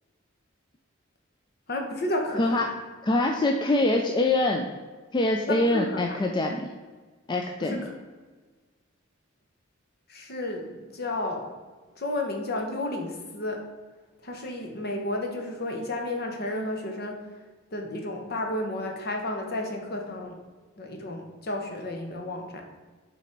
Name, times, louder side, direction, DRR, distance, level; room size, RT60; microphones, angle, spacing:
voice 1, 1.7-2.6 5.5-6.2 7.6-7.9 10.1-11.6 12.0-13.6 14.2-17.2 17.7-20.4 20.8-22.6, left 1 dB, 55° left, 2 dB, 1.0 m, -32 dB
voice 2, 2.4-2.7 3.0-4.7 5.1-6.7 7.3-7.9, left 2 dB, 25° left, 3 dB, 0.3 m, -24 dB
5.8 x 4.1 x 4.5 m, 1.4 s
head